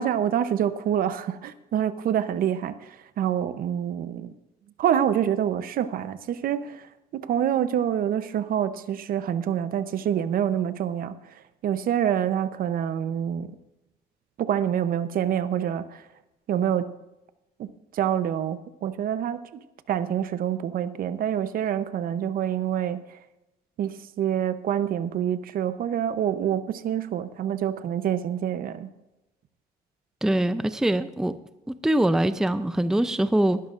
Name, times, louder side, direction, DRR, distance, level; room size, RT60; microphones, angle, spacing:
voice 1, 0.0-4.3 4.8-6.9 7.1-11.2 11.6-13.5 14.4-16.0 16.5-16.9 17.6-19.4 19.9-23.0 23.8-28.9, right 9 dB, 60° right, 0.8 m, -26 dB
voice 2, 30.2-31.3 31.7-33.6, right 1 dB, 5° right, 0.5 m, -23 dB
19.5 x 12.5 x 2.5 m
cardioid pair, 110°, 17 cm